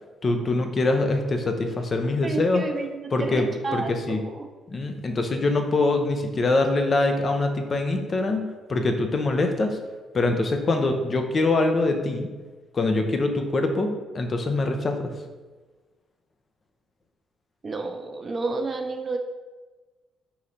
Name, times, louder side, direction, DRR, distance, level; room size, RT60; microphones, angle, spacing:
voice 1, 0.2-2.6 3.1-4.2 4.7-9.8 10.1-12.3 12.7-15.1, left 2 dB, 40° left, 5 dB, 0.6 m, -24 dB
voice 2, 2.2-4.5 17.6-19.2, right 3 dB, 40° right, 4 dB, 0.5 m, -31 dB
4.2 x 2.9 x 3.8 m, 1.3 s
hypercardioid pair, 50°, 0 cm